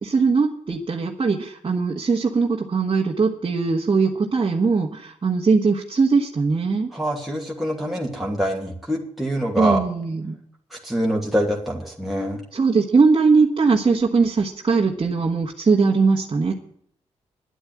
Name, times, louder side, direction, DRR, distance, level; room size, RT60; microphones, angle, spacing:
voice 1, 0.0-6.9 9.6-10.4 12.5-16.5, right 4 dB, 45° right, -1 dB, 1.6 m, -20 dB
voice 2, 6.9-9.8 10.7-12.4, equal, ahead, -2 dB, 2.7 m, -25 dB
11.0 x 8.3 x 9.6 m, 0.66 s
cardioid pair, 60°, 12 cm